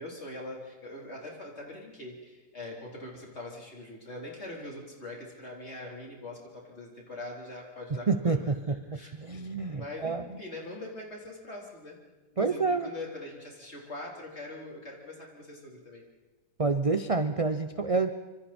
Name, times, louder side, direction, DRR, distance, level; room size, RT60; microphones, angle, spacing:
voice 1, 0.0-8.4 8.9-12.0 12.3-16.0, left 2 dB, 40° left, -2 dB, 4.2 m, -42 dB
voice 2, 7.9-10.4 12.4-12.9 16.6-18.1, right 4 dB, 50° right, 9 dB, 0.4 m, -28 dB
25.5 x 25.0 x 4.4 m, 1.2 s
omnidirectional pair, 1.8 m